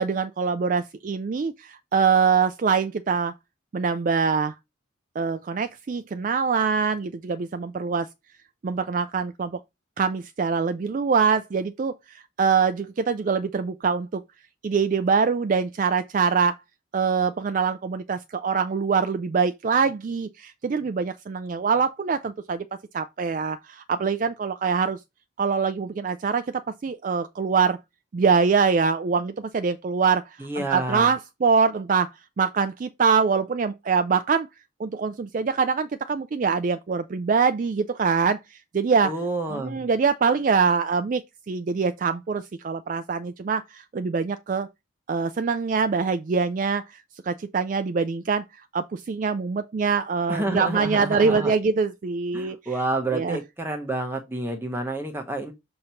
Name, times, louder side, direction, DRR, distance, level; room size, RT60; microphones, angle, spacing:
voice 1, 0.0-3.3 3.7-4.5 5.2-8.1 8.6-9.6 10.0-14.2 14.6-16.5 16.9-22.7 22.9-25.0 25.4-27.8 28.1-32.1 32.4-34.5 34.8-39.1 39.5-44.7 45.1-52.8 53.1-53.4, right 5 dB, 40° right, 0.3 m, -24 dB
voice 2, 30.4-31.1 39.0-39.8 50.3-51.5 52.3-55.5, right 2 dB, 10° right, 0.8 m, -29 dB
6.4 x 2.9 x 5.6 m
head